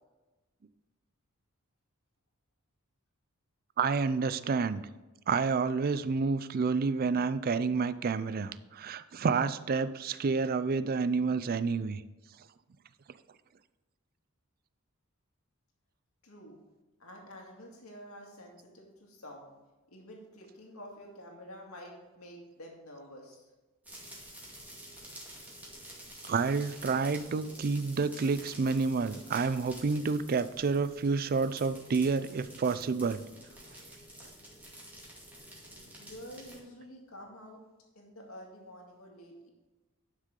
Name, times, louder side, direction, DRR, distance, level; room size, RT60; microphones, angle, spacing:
voice 1, 3.8-4.8 5.3-12.0 26.3-33.2, right 4 dB, 45° right, 14 dB, 0.4 m, -29 dB
voice 2, 16.2-16.6 17.0-19.5 19.9-23.5 35.6-37.6 38.0-39.5, equal, 75° left, 0 dB, 2.3 m, -49 dB
sound 1, 23.8-36.6, right 1 dB, 10° right, 2.2 m, -49 dB
11.0 x 6.4 x 3.8 m, 1.1 s
head